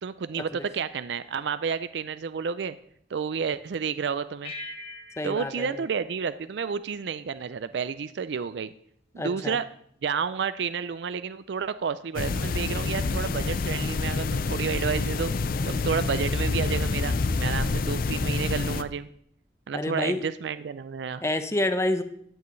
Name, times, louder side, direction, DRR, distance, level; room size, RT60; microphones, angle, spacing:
voice 1, 0.0-2.8 3.1-4.5 5.2-8.7 9.1-9.7 10.0-15.3 15.6-19.1 19.7-21.2, right 6 dB, 70° right, 14 dB, 0.4 m, -30 dB
sound 1, 4.4-7.2, left 2 dB, 35° left, 1.3 m, -44 dB
voice 2, 5.2-5.9 9.2-9.6 19.7-20.3 21.2-22.0, left 1 dB, 15° left, 9 dB, 0.7 m, -28 dB
sound 2, 12.2-18.8, left 3 dB, 55° left, 0.5 m, -27 dB
13.5 x 9.2 x 3.2 m, 0.66 s
head